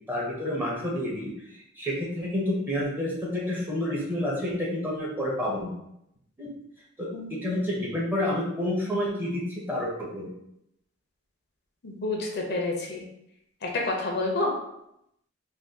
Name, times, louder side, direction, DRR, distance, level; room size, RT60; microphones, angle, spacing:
voice 1, 0.1-1.3 1.8-5.7 6.4-6.5 7.0-10.3, left 1 dB, 10° right, -4 dB, 0.7 m, -29 dB
voice 2, 11.8-13.0 13.6-14.5, left 2 dB, 55° left, 0 dB, 0.6 m, -29 dB
2.6 x 2.3 x 3.5 m, 0.79 s
head